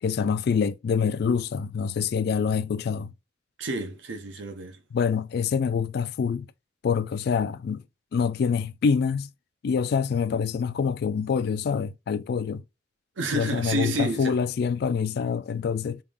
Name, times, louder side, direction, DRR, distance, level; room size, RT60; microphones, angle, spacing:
voice 1, 0.0-3.1 4.9-6.5 6.8-7.8 8.1-9.3 9.6-12.6 13.3-16.0, left 6 dB, 55° left, 0.3 m, -26 dB
voice 2, 3.6-4.8 13.2-14.4, right 2 dB, 80° right, 0.8 m, -30 dB
3.4 x 2.4 x 3.4 m
head